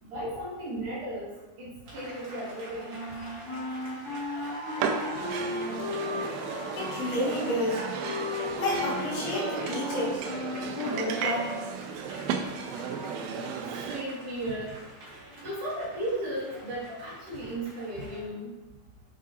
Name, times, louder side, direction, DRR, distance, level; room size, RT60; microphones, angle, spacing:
voice 1, 0.0-3.2 4.7-4.8 13.7-14.8 15.4-18.5, right 1 dB, 60° right, -6 dB, 2.5 m, -35 dB
sound 1, 1.9-18.2, right 1 dB, 45° right, 2.0 m, -44 dB
Wind instrument woodwind instrument, 2.9-11.7, left 2 dB, 55° left, 2.5 m, -36 dB
sound 2, 4.8-14.0, right 6 dB, 85° right, 2.7 m, -34 dB
voice 2, 6.8-7.9 8.6-10.2 10.8-11.5, left 1 dB, 75° left, -5 dB, 3.9 m, -30 dB
8.4 x 6.1 x 2.9 m, 1.1 s
omnidirectional pair, 4.7 m